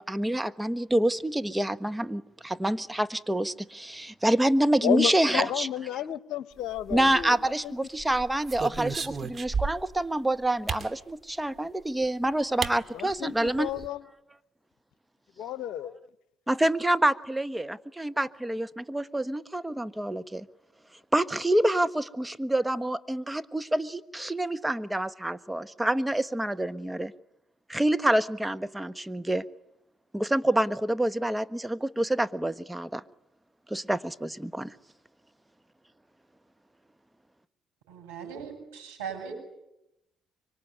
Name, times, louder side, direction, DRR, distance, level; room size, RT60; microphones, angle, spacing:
voice 1, 0.0-5.7 6.9-13.7 16.5-20.5 21.1-27.1 27.7-29.4 30.1-33.0 33.7-34.7, right 1 dB, 10° right, 1.3 m, -27 dB
voice 2, 4.8-7.4 7.6-7.7 12.9-14.0 15.4-16.0, left 11 dB, 65° left, 1.1 m, -31 dB
sound 1, 6.8-7.5 8.0-10.0 10.7-10.9 12.0-12.1 12.6-12.8 13.1-13.2 13.5-13.9, right 5 dB, 40° right, 2.5 m, -33 dB
voice 3, 37.9-39.3, right 7 dB, 85° right, 7.8 m, -39 dB
24.5 x 24.5 x 9.7 m
hypercardioid pair, 50°, 0 cm